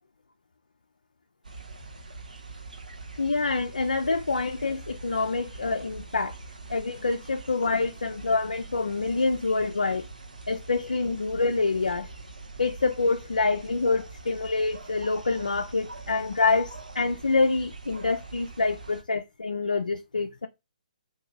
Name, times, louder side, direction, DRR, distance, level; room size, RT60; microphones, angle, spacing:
sound 1, 1.4-19.0, right 3 dB, 70° right, 0.9 m, -44 dB
voice 1, 3.2-6.4 6.7-10.1 10.5-12.1 12.6-20.5, left 3 dB, 70° left, 0.4 m, -26 dB
2.8 x 2.6 x 3.8 m
figure-of-eight pair, 130°, 4 cm